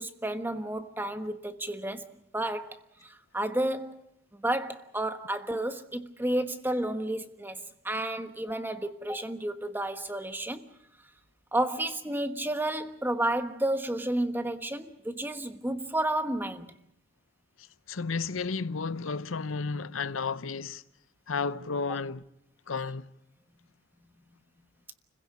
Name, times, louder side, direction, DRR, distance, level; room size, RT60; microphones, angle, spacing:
voice 1, 0.0-2.0 2.3-4.0 4.3-10.7 11.5-16.7, right 1 dB, 10° right, 1.3 m, -31 dB
voice 2, 17.6-20.8 21.3-22.2 22.7-23.1, left 4 dB, 85° left, 0.8 m, -32 dB
30.0 x 16.0 x 8.3 m
head